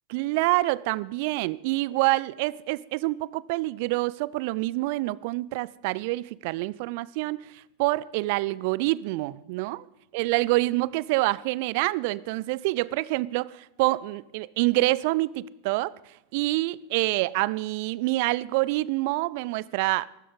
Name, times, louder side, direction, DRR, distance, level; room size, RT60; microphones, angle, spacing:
voice 1, 0.1-9.9 10.1-16.0 16.3-20.1, right 20 dB, 50° right, 0.5 m, -26 dB
22.5 x 12.5 x 4.0 m
figure-of-eight pair, 85°, 0 cm